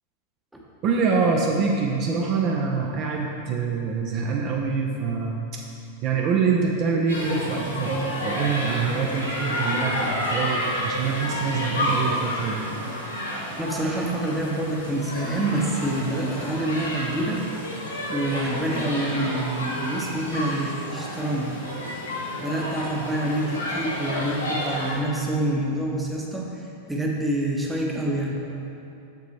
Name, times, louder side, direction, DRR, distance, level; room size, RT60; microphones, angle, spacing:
voice 1, 0.8-5.4 6.0-12.7 18.8-18.9, right 5 dB, 40° right, -1 dB, 0.7 m, -25 dB
sound 1, 7.1-25.0, equal, 75° left, 1.6 m, -30 dB
voice 2, 13.6-17.4 18.1-21.5 22.4-26.5 26.9-28.6, right 1 dB, 5° right, -2 dB, 1.0 m, -27 dB
7.1 x 6.9 x 3.2 m, 2.7 s
figure-of-eight pair, 90°, 0 cm